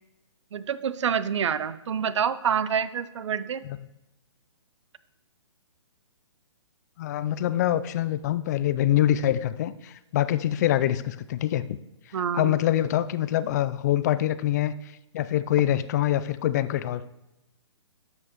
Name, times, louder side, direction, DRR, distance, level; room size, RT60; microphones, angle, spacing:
voice 1, 0.5-3.6 12.1-12.5, right 7 dB, 70° right, 15 dB, 0.5 m, -27 dB
voice 2, 7.0-11.8 12.3-14.8 15.1-17.0, left 12 dB, 35° left, 14 dB, 0.4 m, -25 dB
12.5 x 5.1 x 3.0 m, 0.90 s
hypercardioid pair, 140°, 16 cm